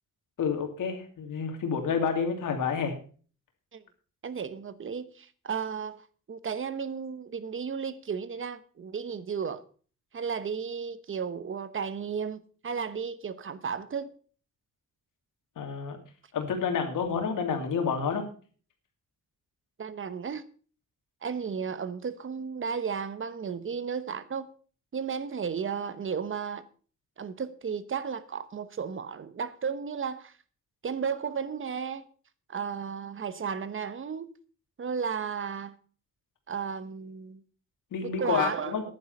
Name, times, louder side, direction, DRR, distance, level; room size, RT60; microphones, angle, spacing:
voice 1, 0.4-2.9 15.6-16.0 16.3-18.2 37.9-38.8, left 6 dB, 85° left, 2.7 m, -29 dB
voice 2, 4.2-6.0 6.3-9.6 10.1-14.1 19.8-20.4 21.2-24.5 24.9-26.6 27.2-30.3 30.8-32.0 32.5-34.3 34.8-35.7 36.5-37.4 38.0-38.8, right 6 dB, 40° right, 1.0 m, -34 dB
10.5 x 9.4 x 5.4 m
wide cardioid pair, 125°, 31 cm